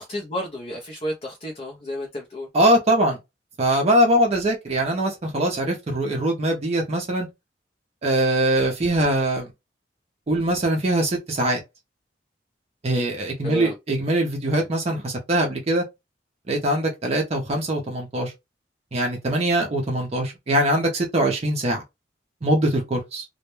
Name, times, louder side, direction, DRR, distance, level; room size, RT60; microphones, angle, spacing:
voice 1, 0.0-2.5 13.4-13.7, equal, 35° left, 0.5 m, -31 dB
voice 2, 2.5-3.2 3.6-7.3 8.0-9.5 10.3-11.6 12.8-15.8 16.5-18.3 18.9-21.8 22.4-23.2, right 1 dB, 35° right, 0.5 m, -22 dB
2.1 x 2.1 x 3.0 m
head